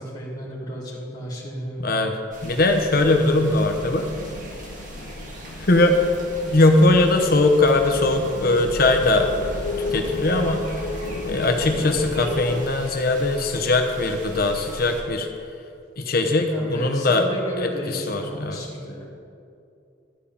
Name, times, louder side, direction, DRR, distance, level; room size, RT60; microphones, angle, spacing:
voice 1, 0.0-1.8 16.5-19.1, right 1 dB, 20° left, -6 dB, 2.5 m, -33 dB
voice 2, 1.8-2.2 2.4-4.1 5.6-6.0 6.5-9.3 9.9-10.9 11.3-15.3 16.0-17.2 17.6-18.6, left 2 dB, 55° left, 4 dB, 0.9 m, -20 dB
sound 1, 2.3-15.0, right 1 dB, 45° right, 2.0 m, -40 dB
sound 2, 2.9-12.7, left 2 dB, 90° left, 0.7 m, -33 dB
12.5 x 5.6 x 8.6 m, 2.5 s
head